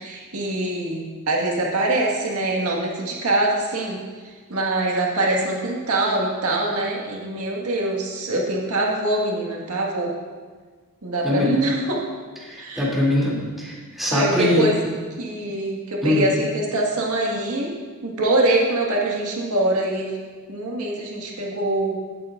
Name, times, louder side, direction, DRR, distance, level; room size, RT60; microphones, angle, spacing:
voice 1, 0.0-10.1 11.0-12.0 12.6-12.9 14.1-14.8 15.2-17.7 18.0-20.2 20.5-21.9, right 2 dB, 90° right, -1 dB, 1.7 m, -24 dB
voice 2, 12.4-14.7 16.0-16.2, left 1 dB, ahead, -6 dB, 2.7 m, -22 dB
16.5 x 8.6 x 2.5 m, 1.5 s
head